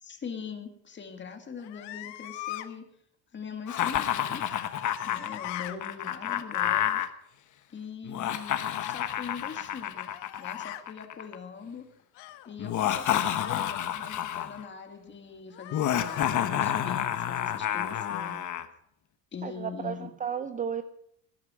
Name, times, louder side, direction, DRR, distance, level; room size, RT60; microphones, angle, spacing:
voice 1, 0.0-2.9 3.3-4.6 5.0-7.1 7.7-10.1 10.4-11.9 12.5-18.4 19.3-20.1, left 6 dB, 25° left, 5 dB, 2.1 m, -42 dB
sound 1, 1.6-2.7 4.4-5.8 8.7-9.1 9.9-10.8 12.1-12.5 13.3-13.8 15.5-16.3 17.6-18.0, left 15 dB, 85° left, 1.2 m, -42 dB
Laughter, 3.7-7.1 8.0-11.4 12.6-14.6 15.7-18.7, left 10 dB, 45° left, 1.2 m, -29 dB
voice 2, 19.4-20.8, right 8 dB, 20° right, 11 dB, 0.5 m, -33 dB
19.0 x 10.5 x 5.0 m, 0.72 s
cardioid pair, 150°, 41 cm